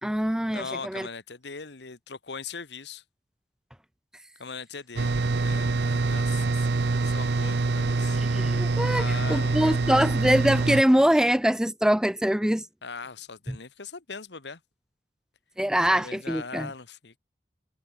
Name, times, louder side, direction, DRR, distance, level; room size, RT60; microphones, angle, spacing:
voice 1, 0.0-1.1 8.3-12.7 13.5-13.6 15.6-16.7, equal, 5° right, 0.5 m, -23 dB
voice 2, 0.5-3.0 4.4-8.2 8.9-9.9 12.8-14.6 15.9-17.2, left 4 dB, 70° left, 1.4 m, -40 dB
sound 1, 5.0-10.8, right 3 dB, 70° right, 0.7 m, -25 dB
head